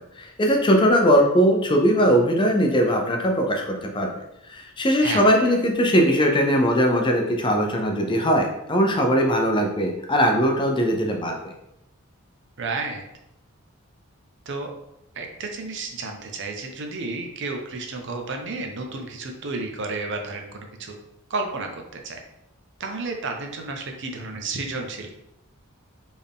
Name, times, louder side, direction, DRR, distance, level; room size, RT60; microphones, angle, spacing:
voice 1, 0.0-4.1 4.5-11.4, equal, 20° left, 2 dB, 0.5 m, -20 dB
voice 2, 12.6-13.0 14.5-14.7 15.1-21.0 21.3-22.2 22.8-25.1, right 3 dB, 55° right, 3 dB, 0.7 m, -31 dB
4.3 x 3.4 x 3.5 m, 0.84 s
head